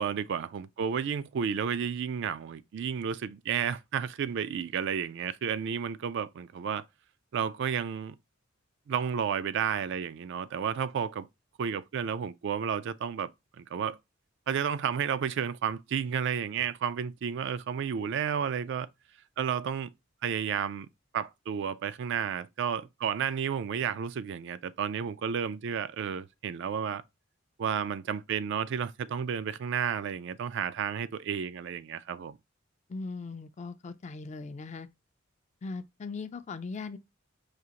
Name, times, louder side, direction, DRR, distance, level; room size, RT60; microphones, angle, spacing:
voice 1, 0.0-6.8 7.3-8.2 8.9-11.3 11.6-13.3 13.6-14.0 14.5-18.9 19.4-19.9 20.2-20.9 21.1-27.0 27.6-32.4, right 7 dB, 60° right, 0.3 m, -32 dB
voice 2, 32.9-34.9 35.6-37.0, left 4 dB, 35° left, 0.4 m, -39 dB
4.9 x 2.4 x 2.8 m
head